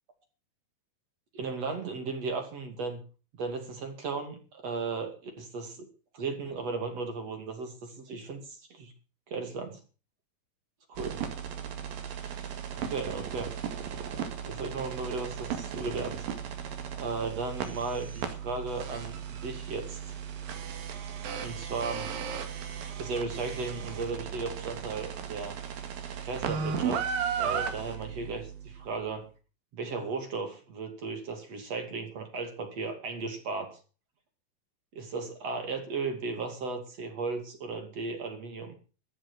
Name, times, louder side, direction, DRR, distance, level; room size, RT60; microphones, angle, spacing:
voice 1, 1.3-3.0 3.4-5.7 6.1-8.9 9.3-9.8 10.9-11.2 12.7-13.6 14.4-16.3 16.9-20.0 21.4-22.1 23.0-25.6 26.2-29.3 29.7-33.8 34.9-38.8, right 4 dB, 45° right, 6 dB, 3.3 m, -36 dB
sound 1, 11.0-28.8, right 7 dB, 65° right, 3.6 m, -36 dB
14.0 x 11.0 x 6.3 m, 0.36 s
omnidirectional pair, 4.6 m